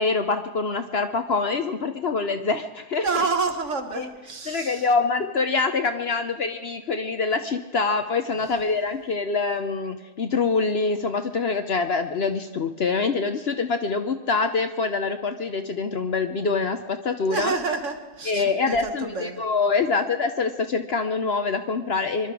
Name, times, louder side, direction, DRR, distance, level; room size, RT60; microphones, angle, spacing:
voice 1, 0.0-3.0 4.0-4.1 4.5-17.5 18.3-22.3, left 4 dB, 50° left, 7 dB, 0.9 m, -25 dB
voice 2, 3.0-4.9 8.3-8.4 17.2-19.4, right 4 dB, 55° right, 6 dB, 1.6 m, -29 dB
24.5 x 12.0 x 4.8 m, 1.1 s
omnidirectional pair, 1.6 m